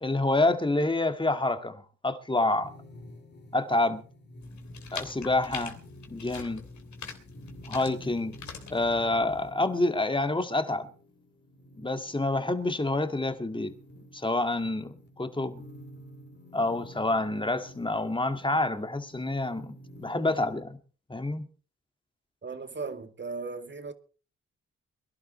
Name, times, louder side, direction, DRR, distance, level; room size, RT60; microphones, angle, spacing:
voice 1, 0.0-2.7 3.5-4.0 4.9-5.8 6.1-6.6 7.7-8.4 8.7-10.9 11.8-13.7 14.1-15.6 16.5-20.8 21.1-21.5, left 2 dB, 15° left, 2.0 m, -28 dB
sound 1, 2.6-20.6, equal, 35° left, 3.4 m, -50 dB
sound 2, 4.4-9.5, left 6 dB, 70° left, 3.1 m, -44 dB
voice 2, 22.4-23.9, right 4 dB, 40° right, 2.3 m, -37 dB
22.5 x 11.5 x 4.2 m
cardioid pair, 55°, 30 cm